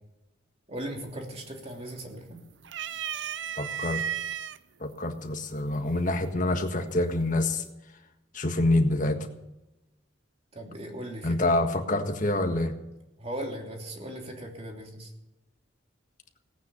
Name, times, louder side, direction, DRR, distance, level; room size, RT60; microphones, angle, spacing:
voice 1, 0.7-2.4 9.0-9.1 10.5-11.5 13.2-15.1, right 1 dB, 30° right, 1 dB, 3.0 m, -38 dB
sound 1, 0.8-1.2 1.5-2.2 2.6-4.6 5.4-5.5 6.8-7.2, right 9 dB, 65° right, 0.6 m, -34 dB
voice 2, 3.5-4.0 4.8-7.6 8.3-9.3 11.2-12.7, left 2 dB, 40° left, 5 dB, 1.6 m, -26 dB
17.5 x 9.4 x 6.9 m, 0.99 s
head